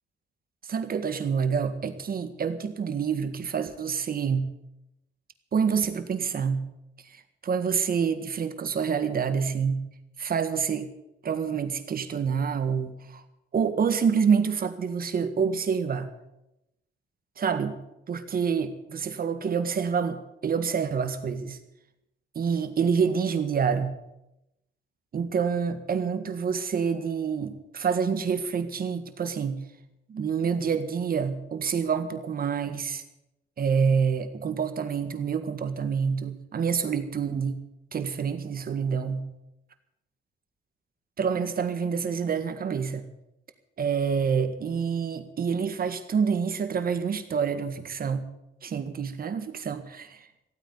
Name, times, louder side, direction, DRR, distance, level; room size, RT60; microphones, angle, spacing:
voice 1, 0.6-4.6 5.5-6.7 7.1-9.9 10.2-10.9 11.2-13.2 13.5-16.1 17.4-17.8 18.1-21.6 22.4-24.0 25.1-29.6 30.1-33.0 33.6-37.6 37.9-39.3 41.2-43.1 43.8-48.3 48.6-50.3, right 6 dB, 50° right, 9 dB, 1.7 m, -27 dB
15.5 x 9.2 x 8.4 m, 0.89 s
cardioid pair, 90°, 20 cm